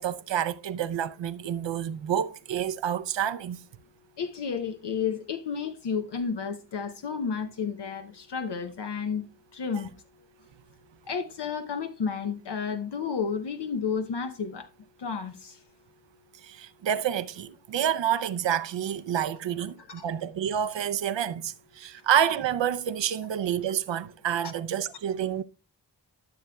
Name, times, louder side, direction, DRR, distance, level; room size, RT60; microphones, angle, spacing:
voice 1, 0.0-3.6 16.4-25.4, right 9 dB, 80° right, 0.6 m, -28 dB
voice 2, 4.2-9.2 9.5-9.9 11.1-14.7 15.0-15.6 19.6-20.1, left 6 dB, 65° left, 0.8 m, -32 dB
13.0 x 6.9 x 2.2 m
cardioid pair, 50°, 43 cm